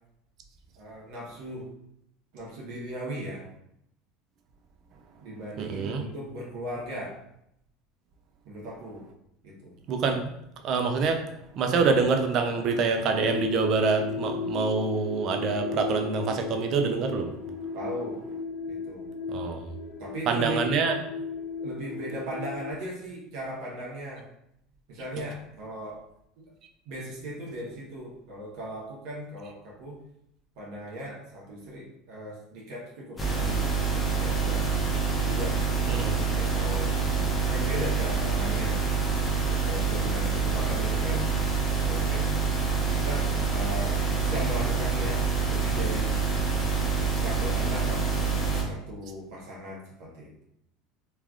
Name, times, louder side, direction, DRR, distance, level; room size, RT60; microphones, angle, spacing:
voice 1, 0.8-1.7 2.3-3.4 5.2-7.2 8.4-9.0 9.4-9.7 17.7-18.2 18.7-19.1 20.0-20.6 21.6-24.2 24.9-26.0 26.4-26.5 26.8-30.0 30.6-35.6 36.1-38.8 39.5-41.3 41.8-42.4 42.9-46.1 47.1-50.4, equal, 70° right, -4 dB, 0.9 m, -38 dB
voice 2, 5.6-6.0 9.9-10.3 10.6-11.2 11.6-17.3 19.3-19.6 20.3-20.9 35.9-36.2, right 4 dB, 50° right, 5 dB, 0.4 m, -26 dB
sound 1, 13.2-22.7, left 5 dB, 70° left, 1.0 m, -35 dB
sound 2, 33.2-48.6, right 4 dB, 15° left, 0.8 m, -26 dB
3.1 x 2.4 x 2.3 m, 0.78 s
supercardioid pair, 120°, 0 cm